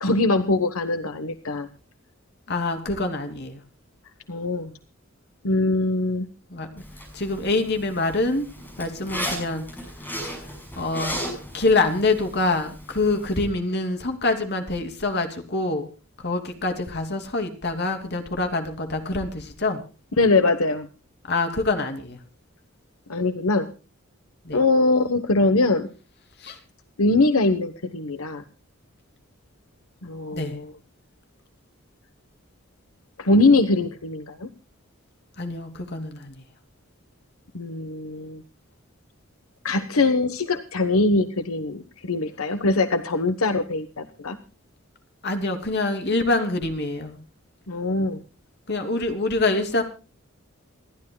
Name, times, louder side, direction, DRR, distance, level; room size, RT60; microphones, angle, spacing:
voice 1, 0.0-1.7 4.3-4.7 5.4-6.3 20.2-20.9 23.1-23.7 24.5-25.9 27.0-28.4 30.0-30.7 33.2-34.5 37.5-38.4 39.6-44.4 47.7-48.2, left 2 dB, 85° left, 9 dB, 1.1 m, -22 dB
voice 2, 2.5-3.6 6.5-6.8 7.1-8.5 8.8-9.6 10.8-11.2 11.5-15.9 16.2-19.8 21.3-22.2 24.4-24.6 26.4-26.6 30.3-30.6 35.4-36.4 45.2-47.2 48.7-49.8, left 2 dB, 50° left, 5 dB, 2.9 m, -25 dB
Zipper (clothing), 6.8-13.5, equal, 10° left, 6.4 m, -36 dB
27.5 x 12.0 x 2.3 m, 0.35 s
head